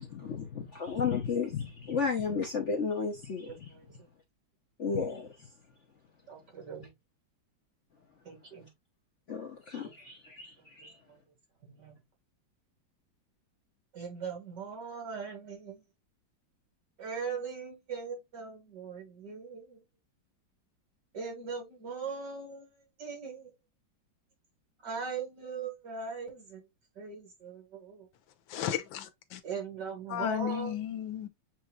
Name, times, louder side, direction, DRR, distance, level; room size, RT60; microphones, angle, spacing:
voice 1, 0.0-3.5 4.8-5.5 9.3-11.0, left 5 dB, 50° left, 0.9 m, -33 dB
voice 2, 3.5-4.0 6.3-6.9 8.2-8.7 9.8-9.9 10.6-12.0 13.9-15.8 17.0-19.8 21.1-23.5 24.8-26.6 27.0-28.1 29.4-30.8, right 5 dB, 60° right, 2.8 m, -40 dB
voice 3, 28.5-29.4 30.1-31.3, left 10 dB, 85° left, 1.5 m, -34 dB
7.3 x 3.0 x 2.3 m
omnidirectional pair, 2.1 m